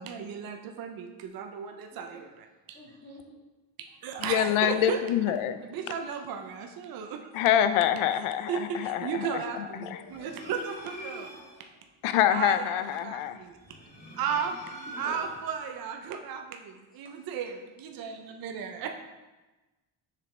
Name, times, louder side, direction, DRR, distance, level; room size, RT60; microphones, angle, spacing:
voice 1, 0.0-2.8 4.0-5.0 5.6-7.2 8.5-11.3 12.3-13.2 14.2-14.6 15.0-17.5 17.9-18.9, right 7 dB, 50° right, 5 dB, 0.5 m, -35 dB
voice 2, 2.7-3.4 5.3-5.5 9.5-10.4 14.8-15.6 15.9-16.0, left 1 dB, 15° left, -6 dB, 1.5 m, -49 dB
voice 3, 4.2-5.6 7.3-10.0 12.0-13.4, left 10 dB, 90° left, 11 dB, 0.6 m, -26 dB
sound 1, 10.0-11.6 13.5-15.6, equal, 55° left, 1.7 m, -44 dB
6.5 x 5.1 x 3.2 m, 1.1 s
cardioid pair, 170°, 48 cm